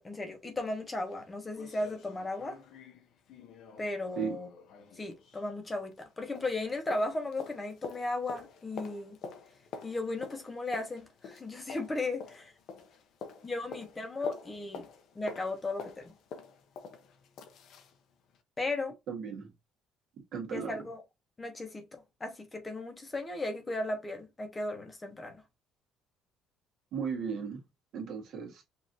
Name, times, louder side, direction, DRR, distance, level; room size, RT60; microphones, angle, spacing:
voice 1, 0.0-2.6 3.8-4.5 5.0-9.2 9.8-12.5 13.4-14.9 15.1-16.1 18.6-18.9 20.5-21.0 21.4-25.4, left 2 dB, 20° left, 0.9 m, -36 dB
sound 1, 0.7-0.8 1.1-1.2 1.5-6.1 6.4-18.0 18.3-18.4, left 5 dB, 60° left, 0.7 m, -47 dB
voice 2, 19.1-19.5 20.3-20.8 26.9-27.6 27.9-28.6, right 6 dB, 55° right, 1.5 m, -36 dB
5.3 x 2.7 x 2.7 m
cardioid pair, 140°, 0 cm